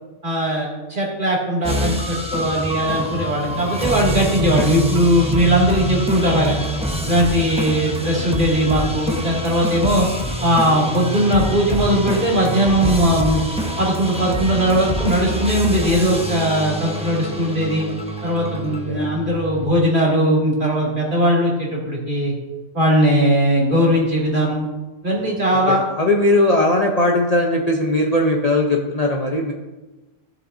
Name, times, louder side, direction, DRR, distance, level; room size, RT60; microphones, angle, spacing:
voice 1, 0.2-6.6 7.0-10.1 10.4-13.4 13.8-17.9 18.2-22.3 22.7-24.7 25.0-25.8, equal, 40° right, -4 dB, 2.6 m, -19 dB
sound 1, 1.6-19.6, equal, 5° right, 0.9 m, -26 dB
voice 2, 18.7-19.1 25.7-29.5, left 1 dB, 35° left, -1 dB, 0.8 m, -19 dB
15.0 x 7.4 x 2.7 m, 1.1 s
omnidirectional pair, 1.3 m